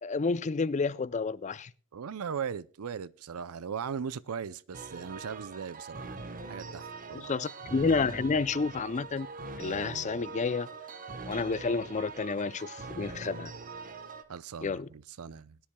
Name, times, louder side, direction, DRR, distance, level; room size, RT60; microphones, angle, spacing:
voice 1, 0.0-1.7 7.1-9.3 9.6-10.7 11.3-13.5 14.6-14.9, left 4 dB, 35° left, 0.4 m, -30 dB
voice 2, 1.9-6.2 6.5-7.3 14.3-15.6, right 7 dB, 70° right, 0.5 m, -38 dB
sound 1, 4.7-14.2, right 4 dB, 40° right, 1.1 m, -42 dB
20.5 x 10.0 x 2.2 m
head